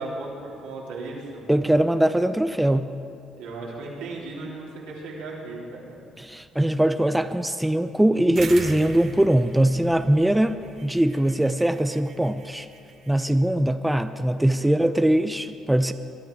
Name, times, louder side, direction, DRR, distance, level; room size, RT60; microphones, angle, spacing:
voice 1, 0.0-1.4 3.3-6.0 14.3-15.0, right 3 dB, 85° right, -5 dB, 3.5 m, -37 dB
voice 2, 1.5-2.9 6.2-10.5 10.8-12.7 13.1-15.9, right 1 dB, 5° right, 10 dB, 0.6 m, -21 dB
sound 1, 8.4-13.3, right 5 dB, 60° right, 1.5 m, -41 dB
22.0 x 11.0 x 4.8 m, 2.5 s
supercardioid pair, 65°, 0 cm